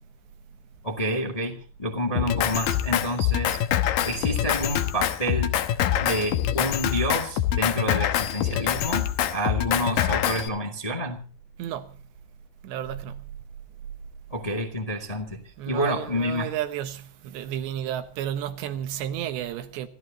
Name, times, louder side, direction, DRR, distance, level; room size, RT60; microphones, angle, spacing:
voice 1, 0.8-3.6 4.0-5.6 6.0-11.3 14.3-16.5, equal, 15° left, 1.2 m, -29 dB
Drum kit, 2.1-10.5, left 11 dB, 70° left, 2.4 m, -25 dB
voice 2, 11.6-12.0 12.6-13.3 15.6-19.9, right 11 dB, 85° right, 3.5 m, -32 dB
27.5 x 14.5 x 2.9 m
omnidirectional pair, 4.9 m